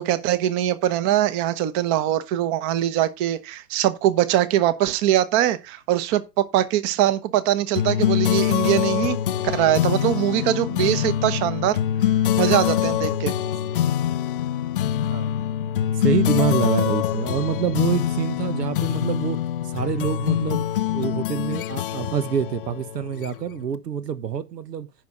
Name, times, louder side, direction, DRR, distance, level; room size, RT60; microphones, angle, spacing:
voice 1, 0.0-9.2 9.4-11.8 12.4-13.3, right 12 dB, 25° right, 1.0 m, -22 dB
sound 1, 7.7-23.6, left 11 dB, 35° left, 0.5 m, -24 dB
voice 2, 12.7-13.2 15.1-15.3 15.9-19.4 19.6-20.7 20.9-24.9, right 8 dB, 80° right, 1.3 m, -26 dB
10.5 x 5.3 x 5.6 m
hypercardioid pair, 130°, 48 cm